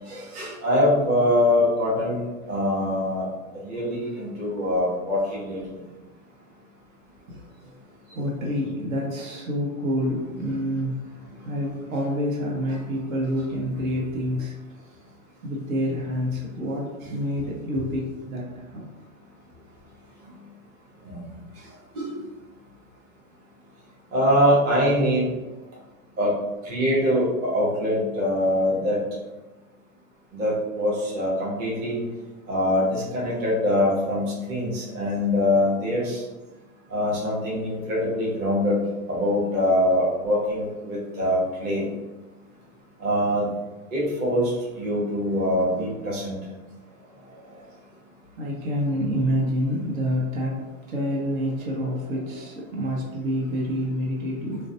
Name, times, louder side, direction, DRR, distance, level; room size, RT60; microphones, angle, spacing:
voice 1, 0.1-3.2 3.6-5.6 21.1-21.2 22.0-22.1 24.1-25.2 26.2-26.3 26.7-29.0 30.3-32.0 32.5-36.2 36.9-38.7 39.1-41.8 43.0-43.5 43.9-44.5 44.8-46.4, left 1 dB, 25° right, -5 dB, 0.7 m, -23 dB
voice 2, 7.3-7.8 8.1-11.0 11.4-14.5 15.4-18.8 46.8-47.8 48.4-54.6, equal, 70° right, -2 dB, 0.9 m, -28 dB
2.4 x 2.1 x 2.6 m, 1.1 s
hypercardioid pair, 115°, 43 cm